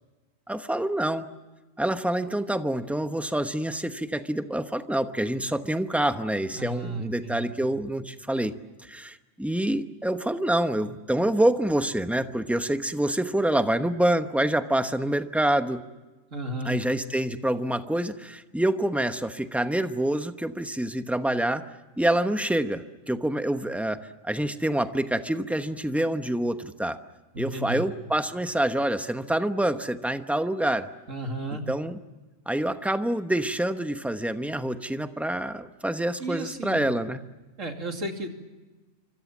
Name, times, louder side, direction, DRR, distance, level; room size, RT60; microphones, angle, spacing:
voice 1, 0.5-1.3 1.8-8.5 8.8-15.8 16.6-21.7 22.0-27.0 27.4-30.9 31.5-32.0 32.5-37.2, right 1 dB, ahead, 8 dB, 0.9 m, -26 dB
voice 2, 6.5-7.5 16.3-16.8 27.3-27.9 31.1-31.6 36.2-36.8 37.6-38.3, right 1 dB, 75° right, 4 dB, 3.1 m, -33 dB
26.5 x 25.5 x 7.3 m, 1.2 s
omnidirectional pair, 1.3 m